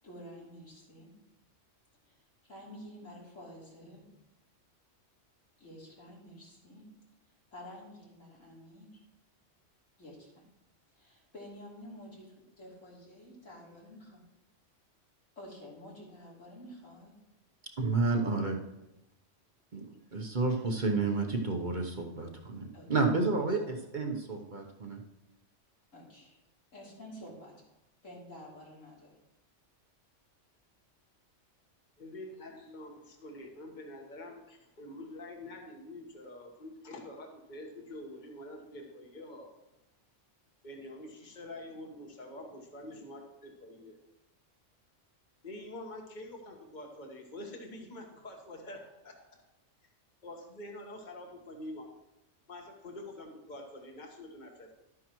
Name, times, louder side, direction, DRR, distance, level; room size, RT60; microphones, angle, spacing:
voice 1, 0.0-1.1 2.1-2.2 2.4-4.0 5.6-6.8 7.5-9.0 10.0-10.4 10.9-14.2 15.3-17.1 22.7-22.9 23.4-23.7 25.9-26.4 26.7-27.5 28.0-29.1, equal, 90° left, -5 dB, 3.5 m, -50 dB
voice 2, 17.8-18.6 19.7-19.9 20.1-25.0, right 3 dB, 45° right, 2 dB, 1.0 m, -30 dB
voice 3, 32.0-39.5 40.6-44.0 45.4-49.4 50.2-51.9 52.5-54.8, left 1 dB, 40° left, 2 dB, 1.5 m, -46 dB
12.0 x 9.5 x 3.1 m, 0.92 s
omnidirectional pair, 1.3 m